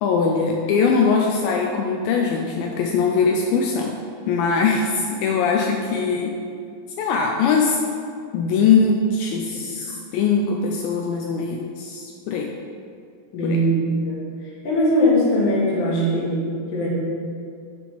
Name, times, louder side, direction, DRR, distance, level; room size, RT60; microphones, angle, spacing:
voice 1, 0.0-3.9 4.3-6.3 7.0-7.8 8.3-12.6 13.4-13.6, left 5 dB, 80° left, 1 dB, 2.2 m, -21 dB
voice 2, 13.3-14.2 14.6-16.9, equal, 50° left, -5 dB, 1.4 m, -20 dB
8.5 x 3.5 x 6.1 m, 2.3 s
omnidirectional pair, 4.5 m